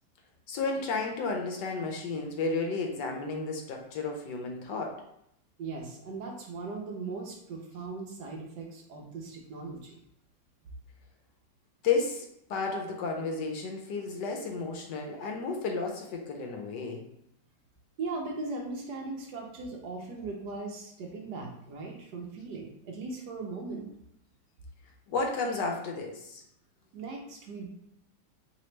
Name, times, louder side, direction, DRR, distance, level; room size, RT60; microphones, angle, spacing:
voice 1, 0.5-5.0 11.8-17.1 25.1-26.4, left 4 dB, 75° left, 2 dB, 1.1 m, -32 dB
voice 2, 5.6-10.0 18.0-23.9 26.9-27.7, right 3 dB, 70° right, 0 dB, 1.2 m, -39 dB
3.3 x 2.9 x 3.1 m, 0.76 s
omnidirectional pair, 2.0 m